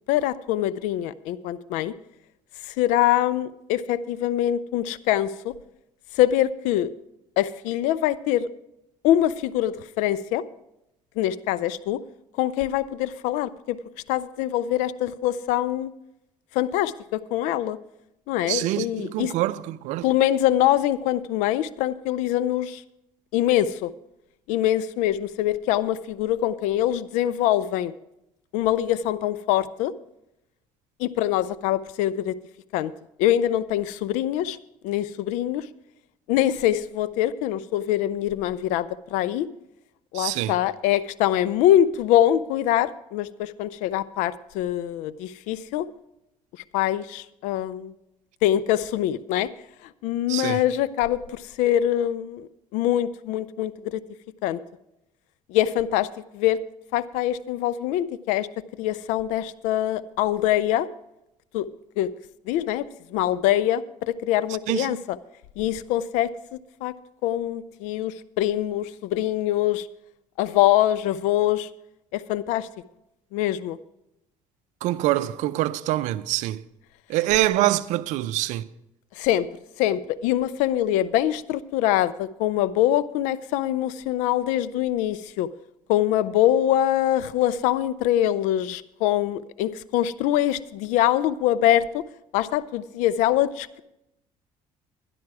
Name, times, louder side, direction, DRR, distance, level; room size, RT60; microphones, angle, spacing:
voice 1, 0.1-1.9 2.7-5.5 6.2-6.9 7.4-8.5 9.0-10.4 11.2-12.0 12.4-13.8 14.1-15.9 16.5-17.8 18.3-19.3 20.0-22.8 23.3-23.9 24.5-27.9 28.5-29.9 31.0-32.3 32.7-32.9 33.2-34.6 34.8-35.6 36.3-39.5 40.1-45.9 46.7-47.9 48.4-49.5 50.0-52.5 52.7-54.0 54.4-54.6 55.5-56.1 56.3-56.6 56.9-58.5 58.8-60.9 61.5-61.7 62.0-62.1 62.5-62.8 63.1-65.2 65.6-66.9 67.2-69.9 70.4-71.7 72.1-72.7 73.3-73.8 79.2-79.5 79.8-85.5 85.9-92.0 92.3-93.8, left 12 dB, 85° left, 0.5 m, -24 dB
voice 2, 18.5-20.0 40.1-40.5 50.3-50.6 64.7-65.0 74.8-76.6 77.1-78.6, right 15 dB, 75° right, 0.5 m, -25 dB
12.0 x 11.0 x 4.7 m
cardioid pair, 95°, 12 cm